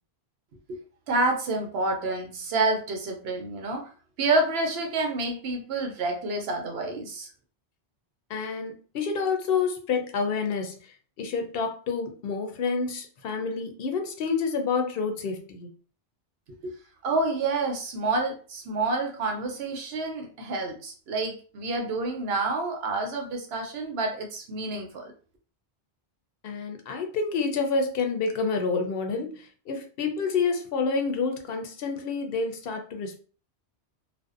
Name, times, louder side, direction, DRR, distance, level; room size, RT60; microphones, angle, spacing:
voice 1, 0.7-3.9 4.2-7.3 16.6-16.8 17.0-25.1, right 2 dB, 75° right, 3 dB, 0.9 m, -28 dB
voice 2, 8.3-10.8 11.2-15.7 26.4-33.2, left 5 dB, 65° left, 5 dB, 0.7 m, -28 dB
2.6 x 2.0 x 2.4 m, 0.39 s
omnidirectional pair, 1.1 m